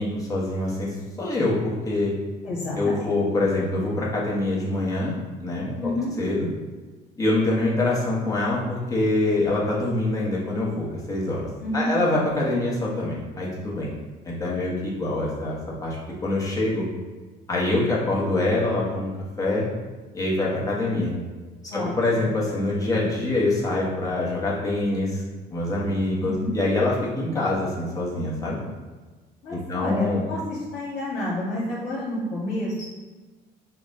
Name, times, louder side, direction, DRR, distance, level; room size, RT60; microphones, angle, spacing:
voice 1, 0.0-2.1 2.8-5.1 5.4-5.8 6.2-6.5 7.2-11.4 11.7-13.9 14.2-16.0 16.2-16.9 17.5-19.1 19.4-19.6 20.1-21.1 21.7-25.2 25.5-28.6 29.5-30.2, left 2 dB, 20° left, -5 dB, 1.2 m, -25 dB
voice 2, 2.4-3.2 5.8-6.1 11.6-11.9 21.7-21.9 22.1-22.2 26.2-26.6 29.4-32.8, left 1 dB, 80° left, -10 dB, 1.3 m, -29 dB
5.7 x 2.4 x 2.7 m, 1.3 s
cardioid pair, 110°, 17 cm